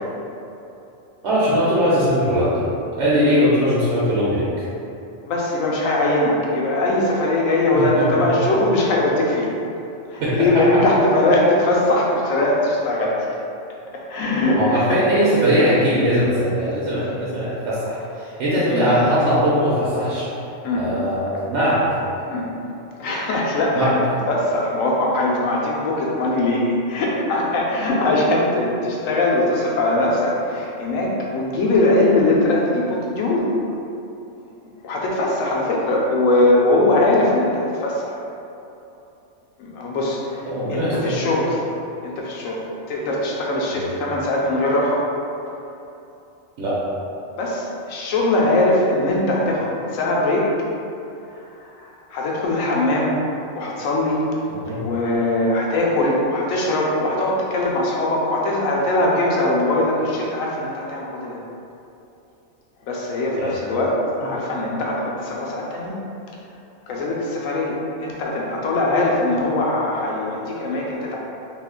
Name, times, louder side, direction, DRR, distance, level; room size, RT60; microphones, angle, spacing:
voice 1, 1.2-2.6 3.0-4.5 7.7-8.3 10.2-10.8 14.5-20.3 20.7-21.9 23.7-23.9 40.4-41.3 43.7-43.9 46.6-46.8 54.5-54.8 63.4-63.6 64.2-64.3, equal, 65° right, -9 dB, 1.0 m, -20 dB
voice 2, 5.2-9.5 10.1-13.3 13.9-15.0 18.7-18.9 20.6-20.9 22.2-22.5 23.0-24.0 24.3-33.5 34.8-38.2 39.6-41.6 42.0-45.5 47.4-50.5 51.3-54.3 54.8-61.4 62.9-66.0 66.9-71.2, left 2 dB, 85° left, -3 dB, 1.0 m, -21 dB
2.8 x 2.4 x 3.6 m, 2.8 s
omnidirectional pair, 1.4 m